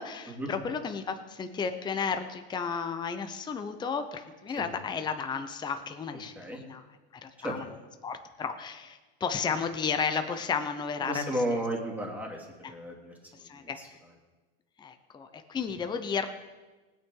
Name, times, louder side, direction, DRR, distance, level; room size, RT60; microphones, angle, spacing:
voice 1, 0.0-6.8 7.2-7.7 8.0-11.3 13.4-13.8 14.8-16.3, left 6 dB, 15° left, 8 dB, 0.7 m, -33 dB
voice 2, 6.1-6.6 7.4-7.5 11.0-13.9, right 1 dB, 5° right, -2 dB, 2.6 m, -34 dB
19.0 x 9.4 x 3.8 m, 1.2 s
supercardioid pair, 140°, 31 cm